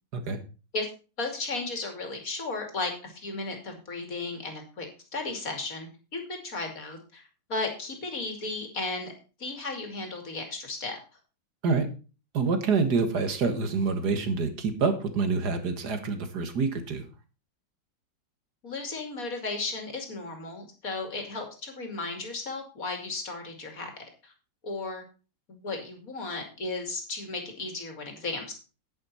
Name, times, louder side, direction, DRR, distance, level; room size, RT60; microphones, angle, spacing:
voice 1, 1.2-4.9 5.1-9.1 9.4-11.0 18.6-23.9 24.2-24.3 24.6-25.0 25.5-28.6, left 3 dB, 45° left, 4 dB, 3.0 m, -35 dB
voice 2, 12.3-17.0, right 4 dB, 60° right, 8 dB, 2.0 m, -27 dB
9.9 x 9.6 x 4.3 m, 0.33 s
omnidirectional pair, 2.1 m